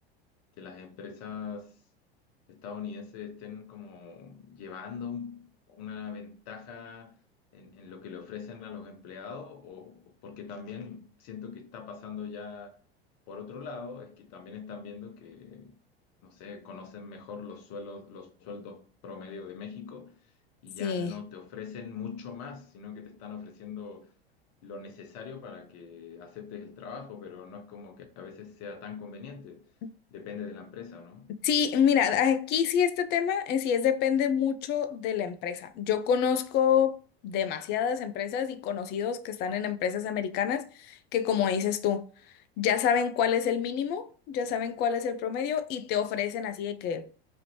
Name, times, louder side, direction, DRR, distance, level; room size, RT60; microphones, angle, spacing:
voice 1, 0.6-1.8 2.5-7.2 7.5-12.8 13.3-15.8 16.2-20.2 20.6-24.1 24.6-29.7 30.1-31.3, left 6 dB, 50° left, 0.8 m, -42 dB
voice 2, 20.8-21.1 31.4-37.0 37.2-42.0 42.6-47.1, left 8 dB, 35° left, 0.4 m, -27 dB
3.0 x 2.5 x 2.9 m
hypercardioid pair, 80°, 31 cm